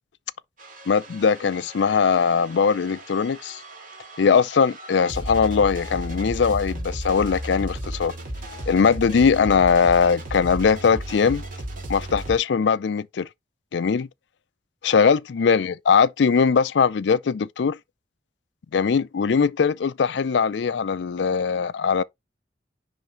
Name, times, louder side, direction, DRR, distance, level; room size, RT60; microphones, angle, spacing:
sound 1, 0.6-12.4, right 1 dB, 50° right, 2.5 m, -35 dB
voice 1, 0.9-3.6 4.2-8.1 8.7-11.4 11.9-13.3 13.7-14.1 14.8-17.8 18.7-22.0, left 6 dB, 70° left, 0.4 m, -20 dB
10.5 x 3.5 x 3.0 m
head